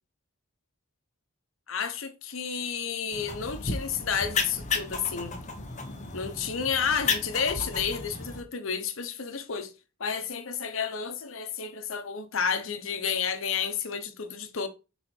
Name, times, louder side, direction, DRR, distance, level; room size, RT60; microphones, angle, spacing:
voice 1, 1.7-5.4 6.1-9.7 10.0-14.7, left 6 dB, 75° left, 0.9 m, -31 dB
sound 1, 3.1-8.4, left 4 dB, 35° left, 1.1 m, -33 dB
5.7 x 4.0 x 4.4 m
head